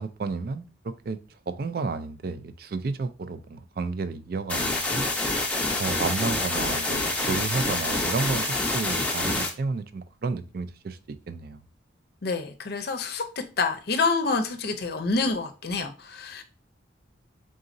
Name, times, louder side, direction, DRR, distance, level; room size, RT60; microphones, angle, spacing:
voice 1, 0.0-5.1 5.8-11.6, right 4 dB, 50° right, 0.4 m, -32 dB
sound 1, 4.5-9.5, left 2 dB, 5° left, 0.6 m, -27 dB
voice 2, 12.2-13.2 13.6-16.4, left 4 dB, 55° left, 0.6 m, -27 dB
4.0 x 3.7 x 2.6 m
head